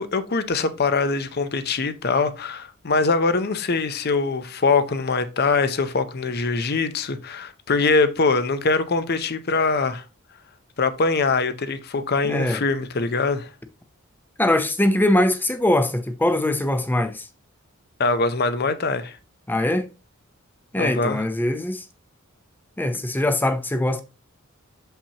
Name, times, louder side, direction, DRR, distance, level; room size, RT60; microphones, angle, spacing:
voice 1, 0.0-10.0 10.8-13.5 18.0-19.1 20.8-21.2, left 4 dB, 50° left, 0.6 m, -23 dB
voice 2, 12.2-12.6 14.4-17.3 19.5-19.9 20.7-21.9 22.8-24.0, left 1 dB, 10° left, 0.6 m, -22 dB
7.1 x 5.6 x 2.9 m
head